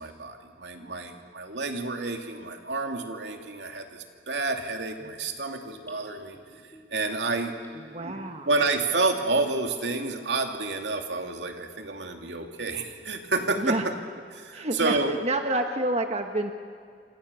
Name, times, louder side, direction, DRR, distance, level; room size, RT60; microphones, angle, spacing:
voice 1, 0.0-6.4 6.9-7.5 8.0-8.1 8.5-13.8 14.3-15.2, right 3 dB, 80° right, 4 dB, 2.8 m, -29 dB
Gurgling / Bathtub (filling or washing), 5.0-10.1 10.5-10.6, equal, 10° left, 4.9 m, -51 dB
voice 2, 7.9-8.5 13.6-13.8 14.5-16.5, right 1 dB, 40° right, 5 dB, 1.3 m, -28 dB
28.0 x 27.0 x 7.1 m, 2.3 s
head